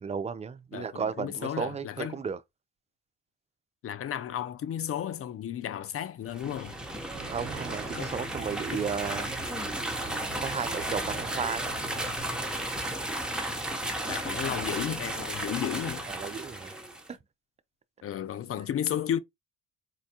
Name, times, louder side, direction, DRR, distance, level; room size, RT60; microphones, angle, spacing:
voice 1, 0.0-2.4 7.3-9.3 10.4-11.8 16.1-16.7 17.1-17.2, right 6 dB, 20° right, 0.4 m, -34 dB
voice 2, 0.7-2.2 3.8-6.8 8.0-8.1 8.7-8.9 14.1-16.1 18.0-19.2, left 10 dB, 40° left, 0.4 m, -33 dB
sound 1, 6.3-17.1, right 1 dB, ahead, 0.8 m, -34 dB
sound 2, 7.1-12.3, right 11 dB, 75° right, 0.5 m, -45 dB
4.3 x 2.2 x 2.8 m
supercardioid pair, 65°, 36 cm